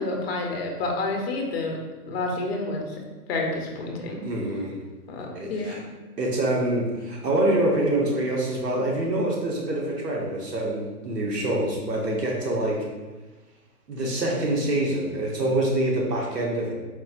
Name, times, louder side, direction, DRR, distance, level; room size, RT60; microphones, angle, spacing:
voice 1, 0.0-1.8 2.1-2.9 3.3-4.2 5.1-5.8, left 2 dB, 45° left, 1 dB, 0.5 m, -29 dB
voice 2, 4.2-4.7 5.3-5.8 6.2-12.9 13.9-16.7, right 1 dB, 85° right, -2 dB, 1.1 m, -25 dB
4.1 x 2.8 x 2.4 m, 1.2 s
hypercardioid pair, 150°, 47 cm